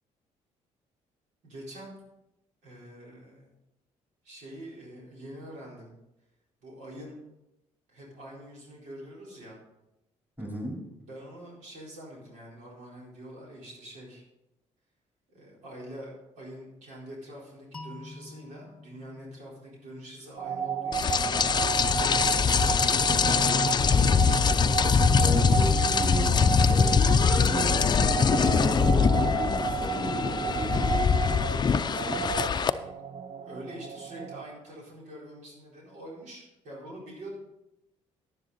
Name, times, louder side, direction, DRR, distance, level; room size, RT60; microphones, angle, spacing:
voice 1, 1.4-1.9 2.6-3.5 4.2-5.9 6.6-7.2 7.9-9.6 11.1-14.2 15.3-21.8 22.2-23.4 24.0-25.0 26.5-27.7 28.4-28.7 33.4-37.3, right 1 dB, 75° right, -4 dB, 4.3 m, -45 dB
voice 2, 10.4-10.8 25.2-27.0 27.3-27.8 28.3-31.2 31.8-32.2, right 1 dB, 15° right, -3 dB, 4.1 m, -34 dB
sound 1, 17.7-20.6, left 2 dB, 5° left, 1.3 m, -48 dB
sound 2, 20.4-34.4, right 8 dB, 45° right, 0.8 m, -33 dB
Rain, 20.9-32.7, left 6 dB, 35° left, 0.5 m, -23 dB
10.5 x 10.0 x 4.2 m, 0.90 s
cardioid pair, 85°, 13 cm